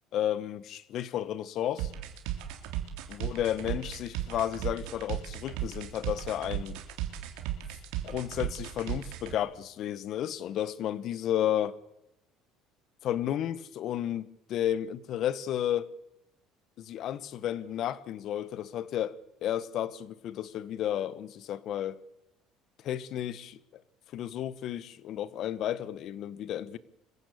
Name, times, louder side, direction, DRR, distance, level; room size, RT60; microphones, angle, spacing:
voice 1, 0.1-1.9 3.1-6.8 8.0-11.8 13.0-15.9 16.8-22.0 22.8-23.8 24.1-26.8, left 11 dB, 55° left, 1.2 m, -32 dB
sound 1, 1.8-9.3, right 13 dB, 80° right, 3.3 m, -35 dB
25.0 x 15.5 x 8.5 m
cardioid pair, 130°, 0 cm